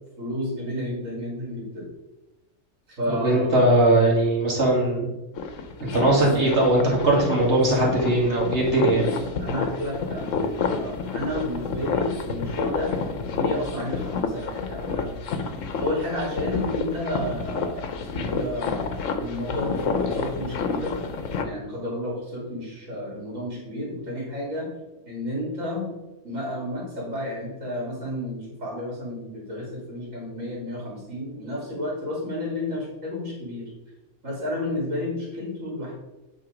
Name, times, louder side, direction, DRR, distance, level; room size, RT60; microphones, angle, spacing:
voice 1, 0.2-1.9 3.0-3.8 6.2-6.4 8.9-13.0 13.3-15.5 15.8-18.8 19.2-20.9 21.4-24.7 25.1-25.9 26.2-33.7 34.2-35.9, left 1 dB, 75° right, -4 dB, 3.0 m, -31 dB
voice 2, 3.1-5.1 5.8-9.1, right 1 dB, 60° right, -2 dB, 2.4 m, -20 dB
sound 1, 5.3-21.5, left 4 dB, 75° left, 1.2 m, -29 dB
8.7 x 4.6 x 5.0 m, 1.0 s
omnidirectional pair, 1.3 m